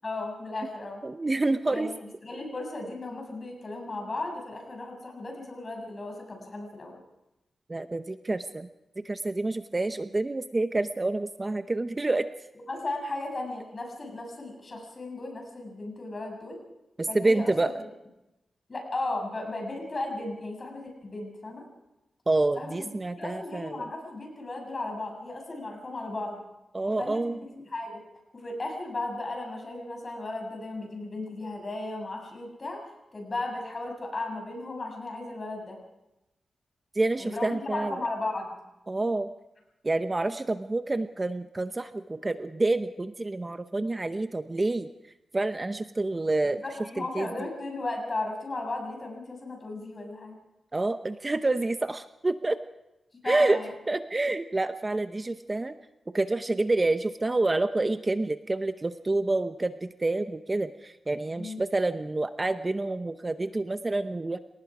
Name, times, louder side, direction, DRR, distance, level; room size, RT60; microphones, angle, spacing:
voice 1, 0.0-1.0 1.7-1.9 2.2-7.0 12.7-16.6 17.1-17.7 18.7-21.7 22.6-26.4 26.8-28.0 28.3-32.9 33.1-35.8 37.2-38.6 46.6-50.4 53.1-53.7 61.4-61.6, left 2 dB, 40° left, 2 dB, 7.1 m, -35 dB
voice 2, 1.0-1.9 7.7-8.7 9.0-12.3 17.0-17.7 22.3-23.9 26.7-27.4 36.9-38.0 38.9-39.3 39.8-44.9 45.3-46.6 47.0-47.3 50.7-52.6 53.3-53.6 53.9-55.8 56.1-64.4, right 2 dB, 25° right, 10 dB, 0.8 m, -28 dB
28.5 x 18.5 x 4.9 m, 0.94 s
wide cardioid pair, 100°, 0 cm